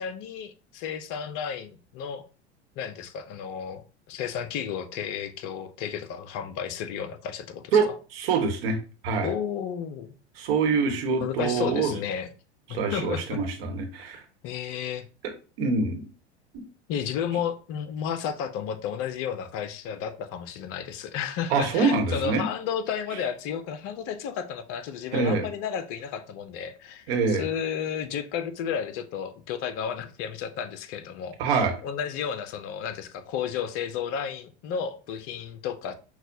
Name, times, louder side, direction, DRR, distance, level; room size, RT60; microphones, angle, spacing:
voice 1, 0.0-2.3 2.8-7.8 9.2-10.1 11.2-12.3 12.7-13.4 14.4-15.1 16.9-35.9, left 8 dB, 40° left, 0.6 m, -32 dB
voice 2, 7.7-8.8 9.0-9.3 10.4-11.9 12.7-14.2 15.6-16.1 21.5-22.5 25.1-25.4 27.1-27.4 31.4-31.7, right 4 dB, 55° right, 1.2 m, -25 dB
5.9 x 2.3 x 2.7 m
hypercardioid pair, 90°, 35 cm